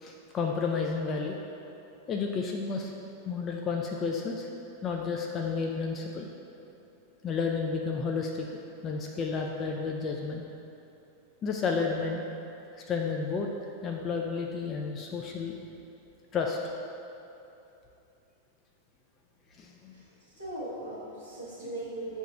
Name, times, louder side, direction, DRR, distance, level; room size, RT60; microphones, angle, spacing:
voice 1, 0.0-1.4 2.1-2.9 3.3-4.5 4.8-6.3 7.2-10.4 11.4-12.3 12.7-13.5 13.8-15.6 16.3-16.6 19.6-19.9, left 5 dB, 30° left, 1 dB, 0.3 m, -31 dB
voice 2, 20.4-22.2, right 2 dB, 85° left, -13 dB, 1.2 m, -38 dB
8.0 x 2.8 x 2.2 m, 2.9 s
figure-of-eight pair, 90°, 0 cm